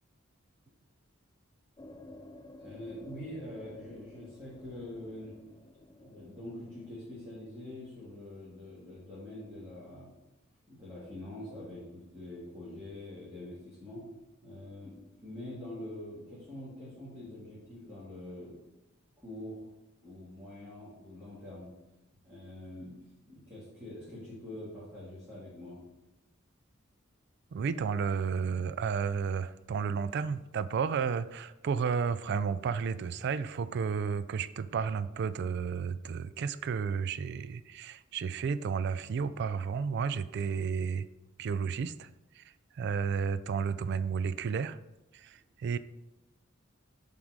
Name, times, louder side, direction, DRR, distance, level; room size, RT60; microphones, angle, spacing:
sound 1, 1.8-6.9, left 1 dB, 20° left, 0.4 m, -53 dB
voice 1, 2.6-5.4 6.0-10.1 10.7-14.0 14.4-18.6 19.2-19.7 20.0-21.7 22.2-22.9 23.3-25.9, left 1 dB, 10° right, -10 dB, 1.9 m, -45 dB
voice 2, 27.5-41.1 41.4-42.1 42.3-42.4 42.7-44.8 45.1-45.8, right 6 dB, 55° right, 14 dB, 0.3 m, -32 dB
7.3 x 3.8 x 4.7 m, 0.96 s
head